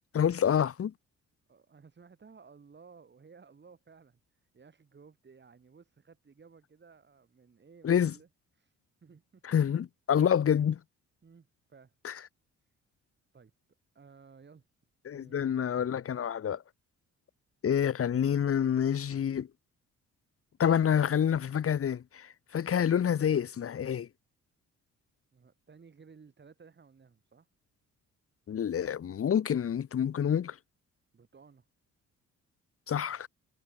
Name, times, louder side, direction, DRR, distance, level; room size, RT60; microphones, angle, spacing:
voice 1, 0.1-0.9 7.8-8.1 9.4-10.8 12.0-12.2 15.0-16.6 17.6-19.5 20.6-24.1 28.5-30.6 32.9-33.3, left 8 dB, 50° left, 1.5 m, -27 dB
voice 2, 1.5-8.3 8.6-9.7 11.2-11.9 12.6-12.7 13.3-13.5 13.9-14.7 15.1-15.6 25.3-27.5 31.1-31.7, right 5 dB, 35° right, 8.0 m, -57 dB
cardioid pair, 90°, 30 cm